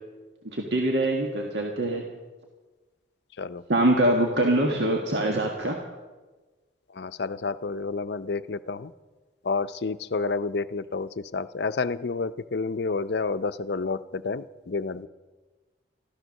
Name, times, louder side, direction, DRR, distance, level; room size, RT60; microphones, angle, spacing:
voice 1, 0.5-2.0 3.7-5.8, right 1 dB, 70° right, 1 dB, 1.7 m, -24 dB
voice 2, 7.0-8.9 9.4-15.1, left 4 dB, 65° left, 14 dB, 0.5 m, -30 dB
14.0 x 14.0 x 6.4 m, 1.3 s
head